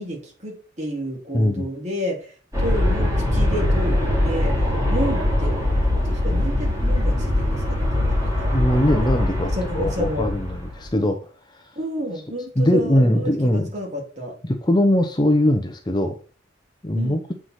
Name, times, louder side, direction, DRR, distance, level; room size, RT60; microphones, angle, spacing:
voice 1, 0.0-2.3 2.6-4.5 4.9-5.5 6.0-8.6 9.5-10.3 11.8-14.3 16.9-17.2, equal, 35° right, -1 dB, 2.8 m, -30 dB
voice 2, 1.3-1.7 8.5-11.2 12.6-13.7 14.5-16.2 16.8-17.2, left 1 dB, 20° left, 6 dB, 0.8 m, -20 dB
Aircraft, 2.5-10.9, left 1 dB, 15° right, 2.8 m, -22 dB
7.8 x 4.9 x 5.7 m, 0.39 s
head